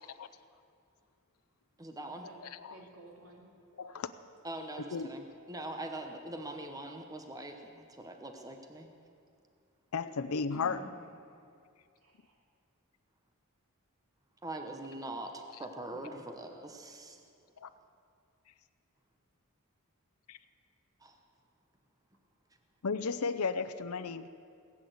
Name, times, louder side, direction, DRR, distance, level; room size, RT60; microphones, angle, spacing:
voice 1, 1.8-2.3 4.4-8.9 14.4-17.2 21.0-21.2, right 1 dB, 15° right, 4 dB, 0.9 m, -43 dB
voice 2, 2.7-3.5 10.2-11.0 12.0-12.4 15.9-16.2 16.5-17.0, equal, 75° right, 0 dB, 2.6 m, -53 dB
voice 3, 3.8-4.1 4.9-5.1 9.9-10.8 17.6-17.7 20.3-20.4 22.8-24.3, left 5 dB, 80° left, 10 dB, 0.6 m, -34 dB
19.0 x 8.7 x 7.9 m, 2.4 s
head